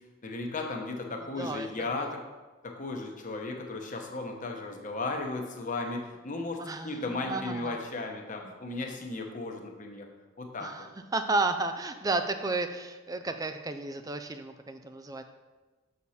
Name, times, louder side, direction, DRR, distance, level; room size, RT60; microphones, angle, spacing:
voice 1, 0.2-2.2 2.6-10.1 10.4-10.7, left 3 dB, 35° left, 2 dB, 0.9 m, -35 dB
voice 2, 1.4-2.1 6.6-7.8 10.6-10.9 11.1-15.2, right 3 dB, 15° right, 7 dB, 0.4 m, -32 dB
6.9 x 6.5 x 4.2 m, 1.3 s
head